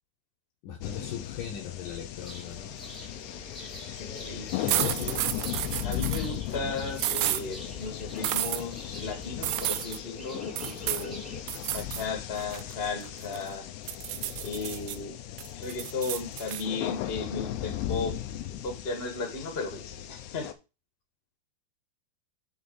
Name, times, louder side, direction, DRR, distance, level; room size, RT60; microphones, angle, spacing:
voice 1, 0.6-2.8 4.6-5.1, left 8 dB, 70° left, 3 dB, 2.0 m, -38 dB
sound 1, 0.8-20.5, left 12 dB, 90° left, 3.0 m, -37 dB
sound 2, 2.2-11.4, equal, ahead, 0.5 m, -45 dB
voice 2, 4.0-4.5 4.9-5.2 5.8-11.2 11.7-13.6 14.4-15.1 15.5-18.2 18.6-20.5, left 4 dB, 40° left, 4 dB, 0.8 m, -35 dB
sound 3, 4.7-6.3 7.0-7.4 8.2-8.6 9.4-10.0 10.6-11.1 11.5-12.1 12.4-13.5 13.9-15.0 15.4-16.6, right 16 dB, 85° right, 2.2 m, -31 dB
7.5 x 4.0 x 6.3 m, 0.29 s
omnidirectional pair, 4.7 m